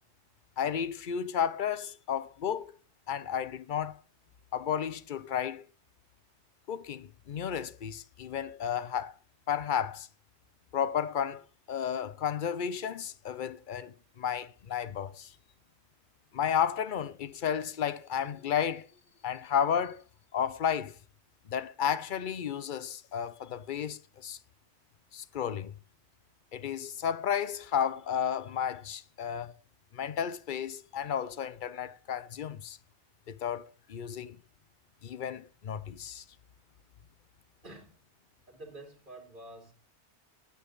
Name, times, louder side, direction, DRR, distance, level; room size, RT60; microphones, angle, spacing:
voice 1, 0.6-2.7 3.1-4.0 4.5-5.7 6.7-9.1 9.5-10.1 10.7-15.3 16.3-18.9 19.2-20.0 20.3-21.0 21.5-24.4 25.1-25.7 26.5-29.5 29.9-32.8 33.3-34.4 35.0-36.2, left 8 dB, 50° left, 0.7 m, -32 dB
voice 2, 37.6-38.0 38.5-39.7, right 2 dB, 45° right, 2.8 m, -48 dB
9.7 x 8.4 x 4.0 m
omnidirectional pair, 1.2 m